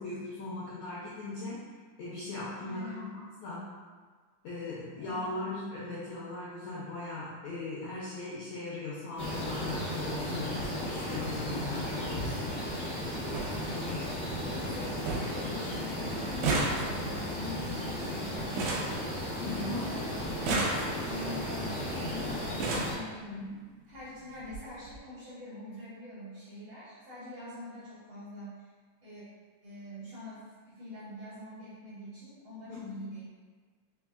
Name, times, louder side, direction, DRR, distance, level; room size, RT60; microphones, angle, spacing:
voice 1, 0.0-1.6 2.0-3.1 3.4-3.7 4.4-12.6 19.4-19.9 23.2-23.5 32.7-32.9, left 2 dB, 85° left, -8 dB, 1.6 m, -39 dB
voice 2, 2.6-3.1 5.0-5.5 13.5-14.0 14.5-19.2 19.7-23.3 23.9-28.7 29.0-29.2 29.6-33.3, left 1 dB, 70° right, -11 dB, 1.5 m, -45 dB
sound 1, 9.2-22.9, left 1 dB, 65° left, 0.8 m, -35 dB
sound 2, 13.0-13.1 13.3-13.5 14.0-14.5 14.7-14.8 15.1-15.4 15.7-19.7 20.3-21.2 22.0-22.1 22.4-23.0 24.0-24.1 24.4-24.6 24.9-25.0, right 3 dB, 90° right, 1.6 m, -33 dB
5.2 x 2.7 x 2.3 m, 1.5 s
omnidirectional pair, 4.0 m